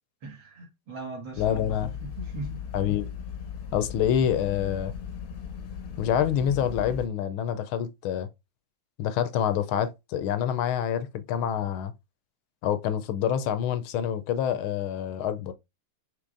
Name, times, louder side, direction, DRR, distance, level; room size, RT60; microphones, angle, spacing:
voice 1, 0.2-2.6, right 2 dB, 65° right, 2.5 m, -40 dB
sound 1, 1.3-7.1, left 7 dB, 60° left, 1.0 m, -37 dB
voice 2, 1.4-1.9 2.7-3.1 3.7-4.9 6.0-8.3 9.0-11.9 12.6-15.5, left 9 dB, 80° left, 1.4 m, -27 dB
6.1 x 3.1 x 2.5 m
omnidirectional pair, 2.3 m